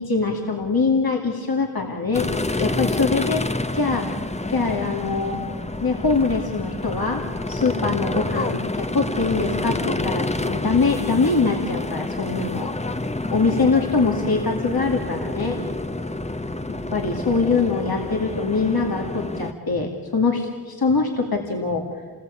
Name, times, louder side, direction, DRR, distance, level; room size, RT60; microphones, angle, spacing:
voice 1, 0.0-3.4 3.7-4.1 4.5-5.4 5.8-7.2 7.5-12.7 13.3-15.6 16.7-21.9, left 4 dB, 80° left, 1 dB, 2.3 m, -23 dB
sound 1, 2.1-19.5, left 2 dB, 20° left, 0.9 m, -28 dB
28.5 x 20.5 x 8.5 m, 1.5 s
wide cardioid pair, 65°, 36 cm